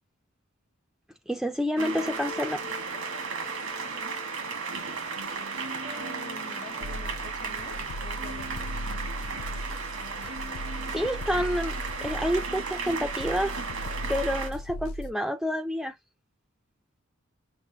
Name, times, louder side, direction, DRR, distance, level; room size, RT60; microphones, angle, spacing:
voice 1, 1.3-2.6 10.2-10.4 10.9-11.7 12.0-13.6 14.1-15.9, equal, ahead, 0.3 m, -28 dB
sound 1, 1.8-14.5, right 4 dB, 85° right, 1.5 m, -35 dB
voice 2, 5.9-8.7, left 2 dB, 50° left, 0.9 m, -46 dB
sound 2, 6.8-15.1, equal, 85° left, 0.4 m, -37 dB
6.0 x 2.1 x 2.7 m
head